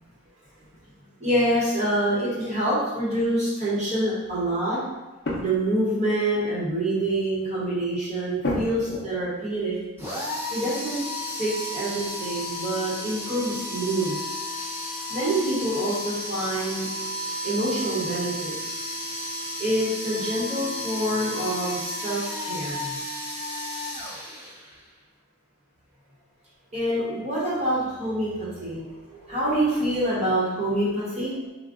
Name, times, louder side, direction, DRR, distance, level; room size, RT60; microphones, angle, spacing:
voice 1, 1.2-4.8 5.4-9.8 10.5-11.0 11.4-14.2 15.1-16.9 17.4-18.9 19.6-23.0 26.7-31.5, right 1 dB, 30° right, -8 dB, 1.0 m, -26 dB
sound 1, 5.2-5.8 6.1-6.2 6.5-6.6 7.2-7.4 8.4-9.3 11.5-11.6 11.9-12.6 13.0-13.1, left 2 dB, 45° left, 0.6 m, -32 dB
sound 2, 10.0-24.9, left 1 dB, 10° right, 0.8 m, -33 dB
3.6 x 2.3 x 3.6 m, 1.1 s
head